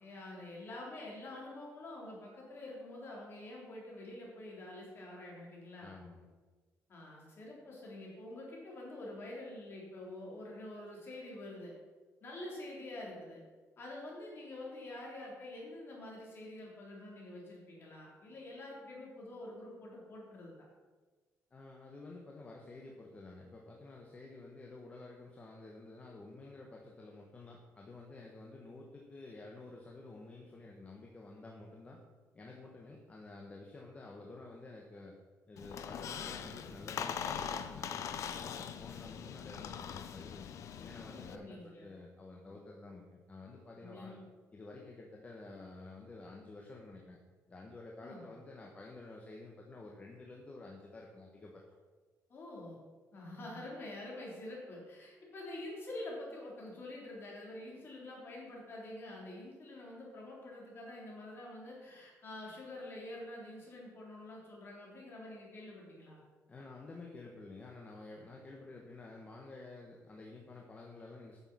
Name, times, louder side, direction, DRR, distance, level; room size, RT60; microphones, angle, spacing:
voice 1, 0.0-5.9 6.9-11.7 12.2-13.4 13.8-20.7 41.1-41.9 42.4-42.5 43.8-44.2 48.0-48.3 52.3-52.8 53.1-66.2, left 1 dB, 40° left, -3 dB, 3.3 m, -47 dB
voice 2, 5.8-6.3 21.5-32.0 32.3-35.2 35.5-40.5 40.8-44.2 44.5-47.2 47.5-51.6 66.5-71.4, left 2 dB, 25° left, -1 dB, 1.1 m, -51 dB
Squeak, 35.6-41.4, left 8 dB, 60° left, 0.6 m, -41 dB
9.3 x 6.5 x 6.1 m, 1.4 s
cardioid pair, 155°, 6 cm